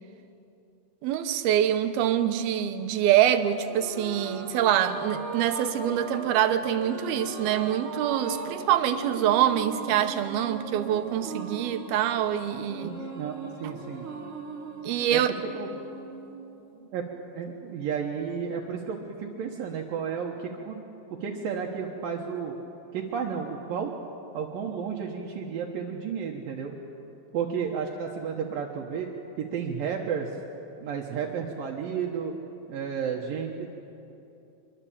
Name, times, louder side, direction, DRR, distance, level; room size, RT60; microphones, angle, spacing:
voice 1, 1.0-12.9 14.8-15.3, right 10 dB, 85° right, 9 dB, 3.0 m, -25 dB
sound 1, 3.5-17.1, right 4 dB, 40° right, 3.1 m, -39 dB
voice 2, 12.8-14.1 15.1-15.2 15.5-15.7 16.9-17.1 17.3-20.8 21.2-22.6 22.9-23.9 24.3-26.7 27.3-29.1 29.4-30.3 30.8-32.3 32.7-33.7, right 7 dB, 70° right, 0 dB, 3.0 m, -32 dB
25.0 x 23.0 x 8.7 m, 2.8 s
omnidirectional pair, 4.3 m